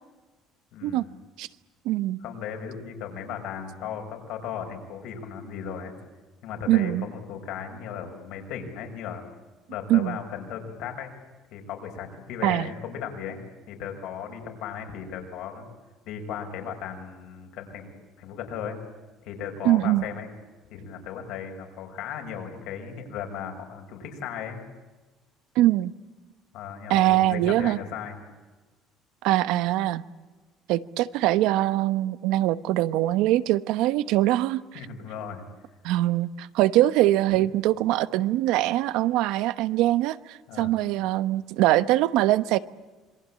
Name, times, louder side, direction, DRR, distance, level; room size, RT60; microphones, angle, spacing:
voice 1, 0.7-1.1 2.2-5.9 6.4-9.2 9.7-11.1 11.5-13.4 13.7-15.7 16.1-17.9 18.2-18.8 19.2-20.3 20.7-24.6 26.5-28.2 34.7-35.4 37.3-37.4 40.5-40.7, left 7 dB, 70° left, 4 dB, 6.0 m, -36 dB
voice 2, 1.8-2.2 6.7-7.1 9.9-10.2 12.4-12.7 19.6-20.1 25.5-25.9 26.9-27.8 29.2-30.0 30.7-34.8 35.8-42.6, right 15 dB, 80° right, 14 dB, 1.0 m, -23 dB
27.0 x 22.5 x 8.6 m, 1.3 s
cardioid pair, 165°, 0 cm